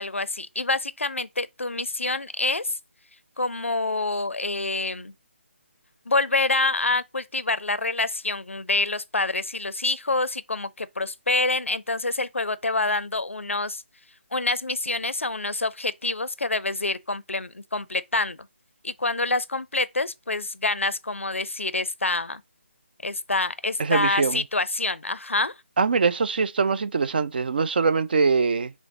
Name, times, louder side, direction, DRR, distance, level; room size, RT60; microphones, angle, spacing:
voice 1, 0.0-2.8 3.4-5.1 6.1-13.8 14.3-18.5 18.8-22.4 23.0-25.5, left 2 dB, 90° left, 0.5 m, -26 dB
voice 2, 23.8-24.4 25.8-28.7, right 5 dB, 50° right, 0.4 m, -23 dB
6.2 x 2.1 x 3.9 m
figure-of-eight pair, 155°, 7 cm